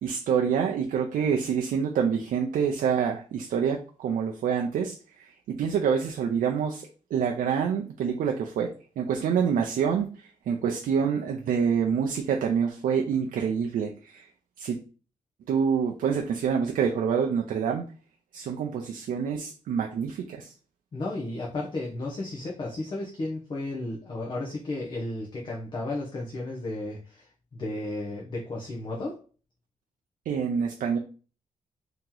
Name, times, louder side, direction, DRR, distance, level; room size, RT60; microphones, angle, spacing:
voice 1, 0.0-14.3 14.6-14.8 15.5-17.8 18.3-20.5 30.3-31.0, right 7 dB, 80° right, 2 dB, 0.5 m, -27 dB
voice 2, 20.9-29.2, left 2 dB, 35° left, -2 dB, 0.7 m, -33 dB
2.9 x 2.8 x 3.7 m, 0.37 s
wide cardioid pair, 155°, 14 cm